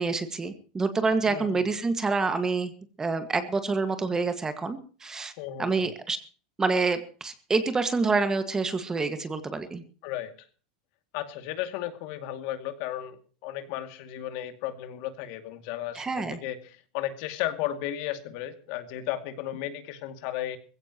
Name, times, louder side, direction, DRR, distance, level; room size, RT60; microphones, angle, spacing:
voice 1, 0.0-2.7 3.0-5.3 5.6-6.2 6.6-9.8 15.9-16.4, right 4 dB, 15° right, 9 dB, 1.8 m, -27 dB
voice 2, 1.3-1.7 5.4-5.9 10.0-10.3 11.1-20.6, left 12 dB, 60° left, 8 dB, 2.4 m, -34 dB
21.0 x 16.0 x 3.0 m, 0.40 s
supercardioid pair, 140°, 4 cm